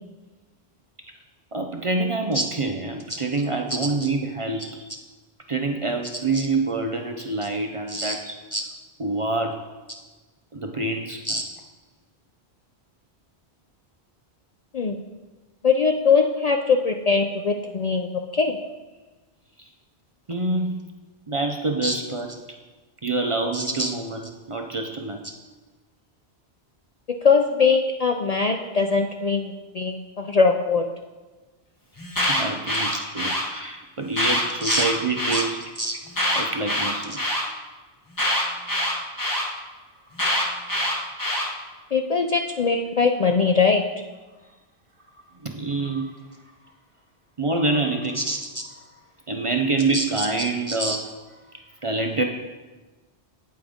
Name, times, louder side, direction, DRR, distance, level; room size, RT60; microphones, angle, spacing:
voice 1, 1.5-4.9 5.5-8.4 9.0-9.6 10.5-11.4 19.6-19.7 20.3-20.8 21.3-22.6 23.0-25.2 32.2-35.6 36.3-37.2 45.4-46.3 47.4-48.2 49.3-51.1 51.5-52.2, right 3 dB, 40° right, 3 dB, 0.5 m, -26 dB
voice 2, 15.6-18.6 21.8-21.9 23.5-23.9 27.2-30.8 32.9-33.0 34.6-34.8 35.3-35.4 35.8-36.0 41.9-43.8 48.2-48.4 49.9-50.0 50.7-51.0, left 4 dB, 50° left, 3 dB, 0.5 m, -22 dB
Alarm, 32.0-33.4 34.1-35.4 36.1-37.4 38.2-39.4 40.2-41.5, left 1 dB, 20° left, 1.3 m, -24 dB
8.7 x 8.6 x 3.6 m, 1.2 s
omnidirectional pair, 1.1 m